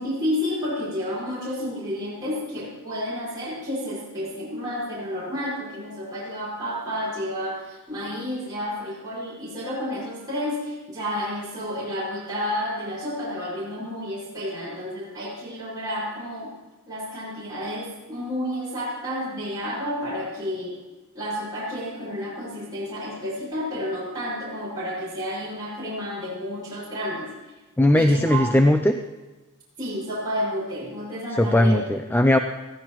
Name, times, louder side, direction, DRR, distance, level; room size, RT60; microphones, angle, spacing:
voice 1, 0.0-16.5 16.9-20.8 21.1-27.3 27.9-28.6 29.8-31.8, equal, 20° right, -9 dB, 5.7 m, -31 dB
voice 2, 27.8-29.0 31.4-32.4, left 1 dB, 10° left, 6 dB, 0.5 m, -18 dB
21.0 x 15.0 x 3.1 m, 1.2 s
head